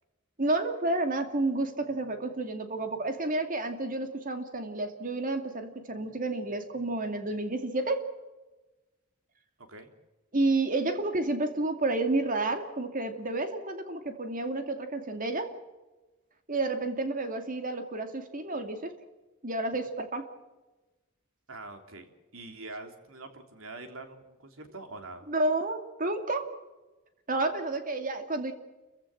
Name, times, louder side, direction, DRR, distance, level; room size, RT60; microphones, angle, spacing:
voice 1, 0.4-8.1 10.3-15.5 16.5-19.0 19.4-20.3 25.3-26.5 27.3-28.5, right 2 dB, 40° right, 7 dB, 2.5 m, -30 dB
voice 2, 21.5-25.3, right 2 dB, 80° right, 6 dB, 3.4 m, -44 dB
28.5 x 16.0 x 7.7 m, 1.1 s
head